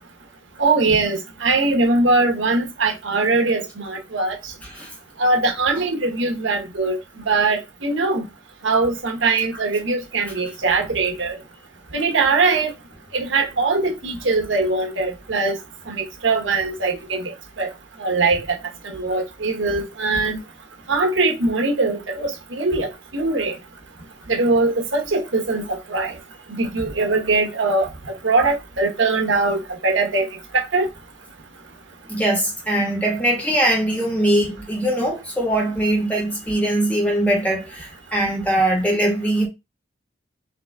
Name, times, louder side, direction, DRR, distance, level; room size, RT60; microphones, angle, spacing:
voice 1, 0.6-4.4 5.2-7.0 7.3-8.3 8.6-11.4 11.9-12.7 13.1-15.6 15.9-17.7 18.0-18.4 18.8-20.4 20.9-23.6 24.3-26.1 26.5-27.9 28.2-30.3 30.5-30.9, right 3 dB, 85° right, 1.1 m, -21 dB
voice 2, 32.1-39.5, right 1 dB, 10° left, 1.4 m, -21 dB
4.0 x 3.2 x 3.6 m
head